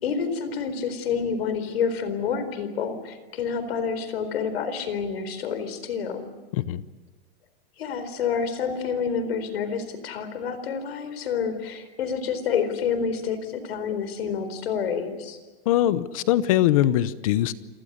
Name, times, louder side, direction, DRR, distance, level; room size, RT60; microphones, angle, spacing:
voice 1, 0.0-6.3 7.8-15.4, left 6 dB, 70° left, 11 dB, 4.3 m, -28 dB
voice 2, 15.7-17.5, left 13 dB, 35° left, 16 dB, 0.8 m, -22 dB
28.5 x 19.0 x 8.2 m, 1.3 s
supercardioid pair, 180°, 31 cm